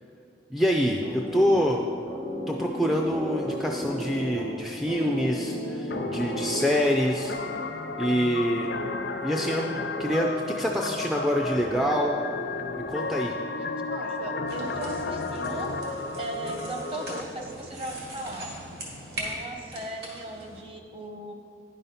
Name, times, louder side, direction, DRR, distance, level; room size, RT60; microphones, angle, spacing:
voice 1, 0.5-1.9 2.5-7.4 8.0-8.7 9.2-12.2 12.9-13.3, equal, ahead, 0 dB, 0.3 m, -26 dB
sound 1, 1.0-7.0, equal, 45° right, 1.2 m, -34 dB
sound 2, 5.9-17.2, left 3 dB, 70° left, 0.5 m, -33 dB
voice 2, 13.6-18.5 19.1-21.3, right 2 dB, 30° right, 3 dB, 0.8 m, -37 dB
sound 3, 14.5-20.6, right 1 dB, 65° right, 1.9 m, -40 dB
9.9 x 5.6 x 5.5 m, 2.4 s
head